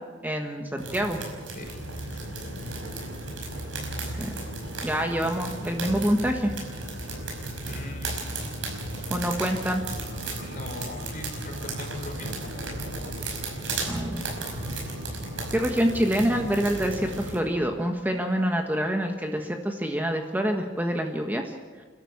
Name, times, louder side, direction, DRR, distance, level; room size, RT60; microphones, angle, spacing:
voice 1, 0.2-1.2 4.2-4.3 4.8-6.5 9.1-9.8 13.9-14.2 15.5-21.5, equal, 10° right, 3 dB, 1.4 m, -26 dB
sound 1, 0.8-17.4, right 2 dB, 85° right, 5.4 m, -35 dB
sound 2, 1.6-17.6, equal, 85° left, 2.4 m, -43 dB
voice 2, 2.0-2.6 7.6-8.2 10.3-12.7, left 1 dB, 45° left, 2 dB, 4.7 m, -41 dB
29.5 x 12.5 x 7.2 m, 1.4 s
head